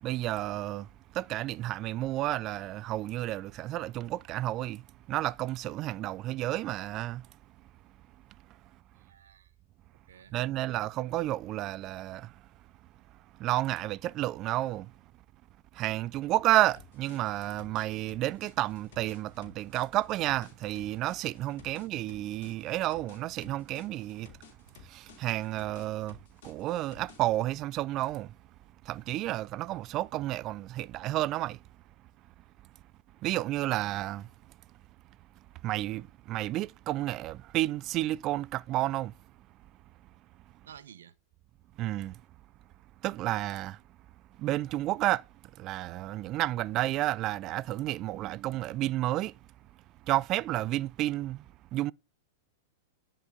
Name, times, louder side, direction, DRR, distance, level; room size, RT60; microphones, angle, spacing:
voice 1, 0.0-7.3 10.3-12.4 13.4-14.9 15.7-24.4 24.8-28.4 28.8-31.6 33.2-34.3 35.6-39.1 41.8-42.2 43.0-43.8 44.4-45.3 45.5-49.3 50.0-51.4 51.7-51.9, right 15 dB, 40° right, 0.3 m, -31 dB
voice 2, 8.9-9.5 10.1-10.8 40.6-41.1, right 9 dB, 75° right, 0.9 m, -54 dB
sound 1, 16.8-27.4, left 7 dB, 65° left, 3.0 m, -55 dB
10.5 x 5.4 x 3.6 m
hypercardioid pair, 105°, 0 cm